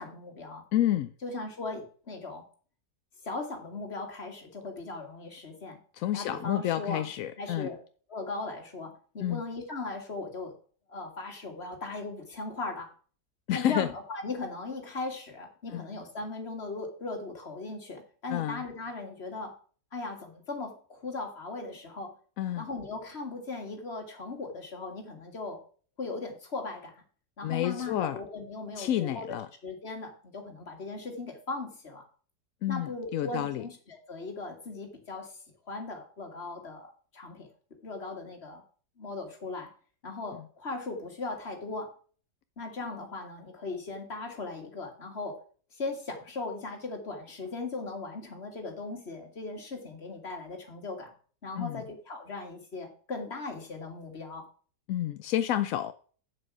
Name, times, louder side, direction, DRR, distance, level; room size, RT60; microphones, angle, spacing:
voice 1, 0.0-0.6 1.2-2.4 3.2-5.8 6.1-7.0 7.4-7.8 8.1-10.5 10.9-12.9 13.5-19.5 19.9-22.1 22.6-25.6 26.0-26.9 27.4-29.4 29.6-32.0 32.7-35.3 35.7-37.5 37.8-38.6 39.0-39.7 40.0-41.9 42.6-45.4 45.7-51.1 51.4-54.4, left 3 dB, 35° left, 2.2 m, -38 dB
voice 2, 0.7-1.1 5.9-7.7 9.2-9.4 13.5-13.9 15.7-15.9 18.3-18.6 22.4-22.6 27.4-28.2 28.8-29.5 32.6-33.6 51.6-51.8 54.9-55.9, left 12 dB, 70° left, 0.8 m, -29 dB
8.1 x 7.6 x 6.0 m
omnidirectional pair, 1.8 m